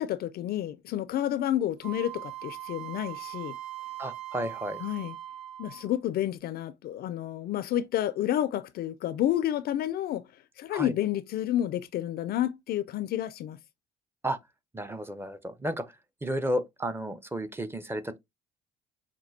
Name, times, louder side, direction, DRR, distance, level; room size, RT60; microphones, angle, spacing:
voice 1, 0.0-3.5 4.8-5.1 5.6-10.2 10.6-13.6, left 12 dB, 55° left, 0.4 m, -30 dB
Wind instrument woodwind instrument, 1.8-6.0, right 14 dB, 80° right, 0.6 m, -40 dB
voice 2, 4.0-4.8 10.7-10.9 14.2-14.4 14.7-15.9 16.2-18.2, equal, 10° right, 0.6 m, -32 dB
5.9 x 2.2 x 2.6 m
hypercardioid pair, 60°, 19 cm